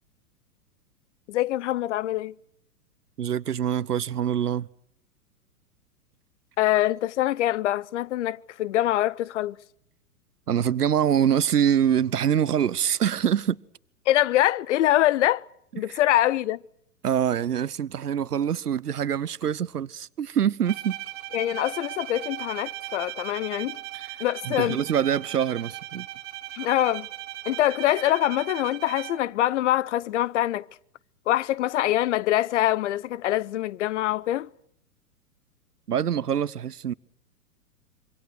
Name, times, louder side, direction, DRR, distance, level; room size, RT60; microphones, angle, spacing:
voice 1, 1.3-2.3 6.6-9.6 14.1-15.4 15.7-16.6 21.3-23.8 24.2-24.8 26.5-27.1 27.5-30.7 31.3-34.5, left 14 dB, 50° left, 0.9 m, -24 dB
voice 2, 3.2-4.7 10.5-13.6 15.9-16.0 17.0-21.0 23.9-24.2 24.4-26.1 35.9-36.9, right 9 dB, 75° right, 0.9 m, -25 dB
Bowed string instrument, 20.6-29.4, right 16 dB, 40° right, 2.3 m, -38 dB
26.0 x 25.0 x 6.3 m
figure-of-eight pair, 105°, 46 cm